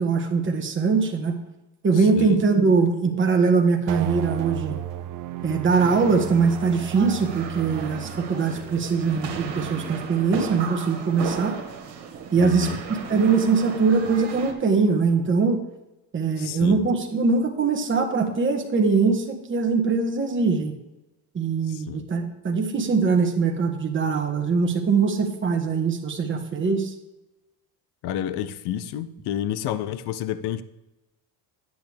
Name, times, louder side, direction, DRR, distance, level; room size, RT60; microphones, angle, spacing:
voice 1, 0.0-1.4 1.8-4.8 5.4-11.6 12.3-12.7 13.1-15.6 16.1-20.8 21.3-26.9, right 4 dB, 25° right, 3 dB, 1.4 m, -22 dB
voice 2, 1.9-2.4 12.4-12.8 16.4-16.8 21.7-22.1 28.0-30.6, left 10 dB, 65° left, 14 dB, 0.7 m, -30 dB
sound 1, 3.9-10.4, right 12 dB, 50° right, 0.6 m, -35 dB
sound 2, 5.7-14.5, right 6 dB, 70° right, 1.9 m, -35 dB
10.0 x 8.2 x 3.5 m, 0.98 s
cardioid pair, 105°, 43 cm